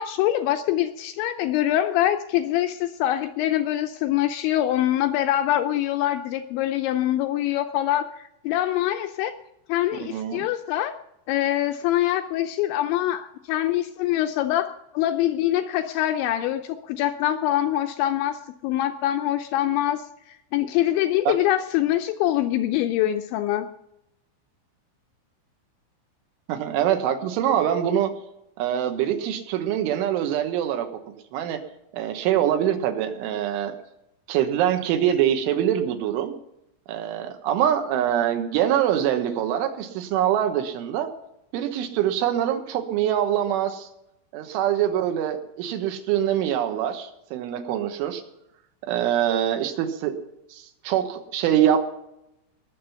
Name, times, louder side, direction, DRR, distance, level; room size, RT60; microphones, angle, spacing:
voice 1, 0.0-9.3 9.7-10.9 11.3-23.7, left 13 dB, 80° left, 7 dB, 2.7 m, -24 dB
voice 2, 10.0-10.5 21.3-21.4 26.5-28.1 28.6-30.9 31.3-31.6 31.9-33.7 34.3-36.4 36.9-41.1 41.5-43.9 44.3-48.2 48.9-50.2 50.5-51.9, right 10 dB, 75° right, 6 dB, 3.6 m, -24 dB
20.5 x 7.5 x 5.7 m, 0.83 s
omnidirectional pair, 5.7 m